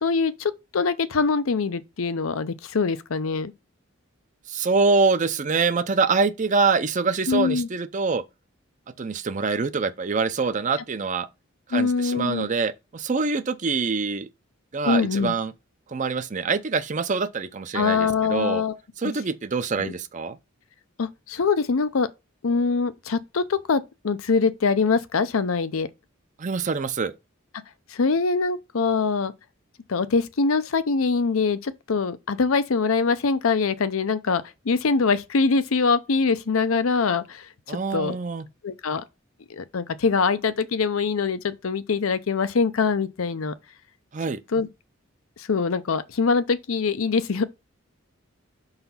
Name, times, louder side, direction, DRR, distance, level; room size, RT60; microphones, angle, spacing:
voice 1, 0.0-3.5 7.3-7.7 11.7-12.5 14.8-15.3 17.7-18.8 19.0-19.1 19.8-19.9 21.0-22.1 22.4-25.9 27.9-29.3 29.9-38.2 38.6-39.0 39.5-43.5 44.5-44.7 45.4-47.4, left 4 dB, 80° left, 0.6 m, -23 dB
voice 2, 4.5-8.2 9.0-11.3 11.7-14.3 14.7-15.5 15.9-18.6 19.0-20.4 26.4-27.1 37.7-38.5 44.1-44.4, right 4 dB, 35° right, 0.5 m, -25 dB
5.7 x 4.1 x 5.5 m
head